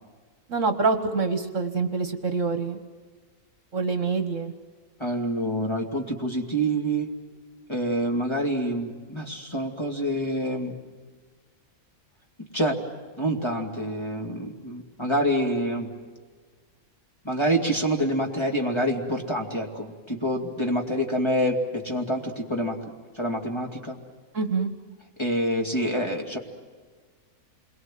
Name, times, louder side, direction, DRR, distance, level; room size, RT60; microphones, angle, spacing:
voice 1, 0.5-2.8 3.7-4.5 24.3-24.7, right 4 dB, 55° right, 7 dB, 1.7 m, -26 dB
voice 2, 5.0-7.1 7.7-10.8 12.5-12.8 13.2-15.9 17.2-22.8 23.1-24.0 25.2-26.4, right 1 dB, 15° left, 1 dB, 2.6 m, -27 dB
28.5 x 22.5 x 7.6 m, 1.5 s
omnidirectional pair, 1.6 m